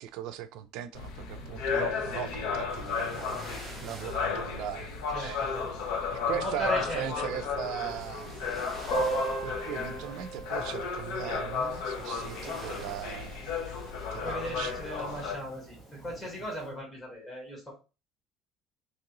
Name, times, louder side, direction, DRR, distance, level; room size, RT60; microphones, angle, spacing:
voice 1, 0.0-3.4 3.8-5.4 6.1-8.4 8.8-9.0 9.4-13.6 14.1-14.8, right 10 dB, 70° right, 0.4 m, -38 dB
sound 1, 0.9-15.4, left 5 dB, 85° left, 0.8 m, -34 dB
sound 2, 2.7-16.5, right 2 dB, 10° right, 1.2 m, -49 dB
voice 2, 5.1-5.7 6.3-7.3 14.2-15.8 16.0-17.7, equal, 15° left, 1.9 m, -36 dB
Piano, 8.9-14.3 14.5-14.6 14.8-15.0 15.3-15.4 16.2-16.3, right 5 dB, 55° left, 0.9 m, -38 dB
3.7 x 2.9 x 2.9 m
cardioid pair, 180°, 0 cm